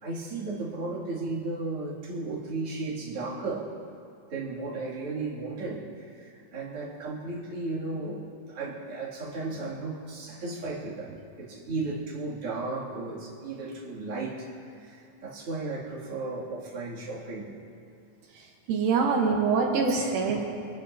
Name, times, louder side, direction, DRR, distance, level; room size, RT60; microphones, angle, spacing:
voice 1, 0.0-3.7 4.3-17.5, right 3 dB, 40° right, -7 dB, 3.2 m, -35 dB
voice 2, 18.7-20.4, right 5 dB, 80° right, 0 dB, 2.9 m, -24 dB
24.0 x 14.5 x 2.8 m, 2.5 s
omnidirectional pair, 4.1 m